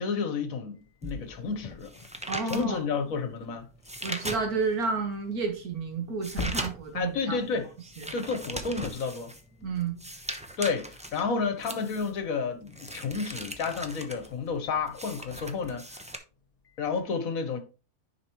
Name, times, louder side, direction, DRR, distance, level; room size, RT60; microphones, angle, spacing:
voice 1, 0.0-1.9 2.5-3.7 6.9-7.7 8.1-9.3 10.6-16.0 16.8-17.6, left 5 dB, 70° left, 1.4 m, -31 dB
sound 1, 0.7-7.5 8.5-17.0, left 4 dB, 50° left, 0.4 m, -48 dB
sound 2, 1.0-4.9 5.3-16.2, right 1 dB, 10° right, 0.5 m, -40 dB
voice 2, 2.3-2.8 4.0-7.4 8.0-8.1 9.6-10.0, right 4 dB, 80° right, 2.1 m, -31 dB
10.0 x 5.0 x 3.0 m
omnidirectional pair, 1.6 m